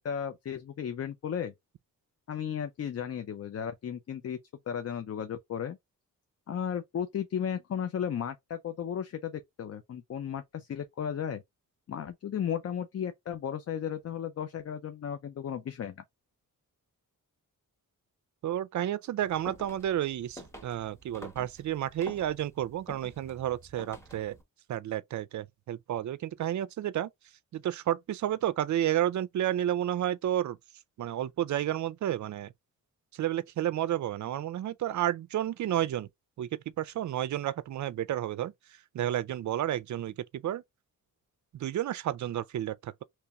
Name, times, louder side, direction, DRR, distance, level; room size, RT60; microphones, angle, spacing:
voice 1, 0.0-1.5 2.3-4.4 4.7-5.8 6.5-11.4 11.9-16.0, left 8 dB, 45° left, 0.5 m, -35 dB
voice 2, 18.4-24.4 24.7-27.1 27.5-30.6 31.0-32.5 33.1-36.1 36.4-36.5 36.8-38.5 38.9-40.6 41.5-43.0, right 11 dB, 60° right, 0.4 m, -31 dB
sound 1, 19.2-24.4, equal, 10° left, 1.1 m, -49 dB
3.0 x 2.9 x 3.4 m
cardioid pair, 110°, 35 cm